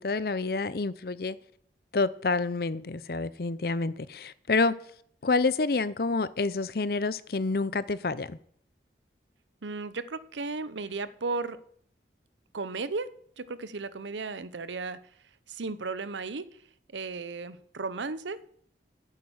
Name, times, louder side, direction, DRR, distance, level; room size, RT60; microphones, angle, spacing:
voice 1, 0.0-1.4 1.9-4.7 5.2-8.4, left 3 dB, 55° left, 0.6 m, -28 dB
voice 2, 9.6-11.6 12.5-13.1 13.4-15.0 15.5-16.4 16.9-18.4, right 3 dB, 85° right, 0.8 m, -35 dB
9.0 x 8.5 x 8.0 m
head